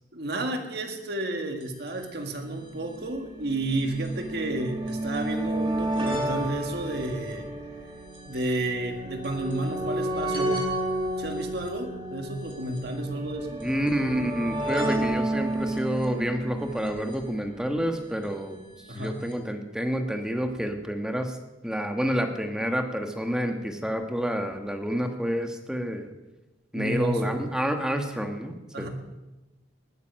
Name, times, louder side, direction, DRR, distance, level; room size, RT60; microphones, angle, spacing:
voice 1, 0.1-7.5 8.2-10.6 11.2-13.6 18.9-19.2 26.7-27.4 28.7-28.9, right 1 dB, 60° right, 4 dB, 1.9 m, -31 dB
sound 1, 1.6-1.7 1.9-2.0 2.8-18.1 19.0-19.1 19.3-19.4, right 1 dB, 30° right, 2.5 m, -32 dB
voice 2, 13.6-18.6 18.9-21.4 21.6-26.1 26.7-28.9, equal, 5° right, 5 dB, 1.3 m, -29 dB
19.5 x 9.3 x 6.4 m, 1.0 s
head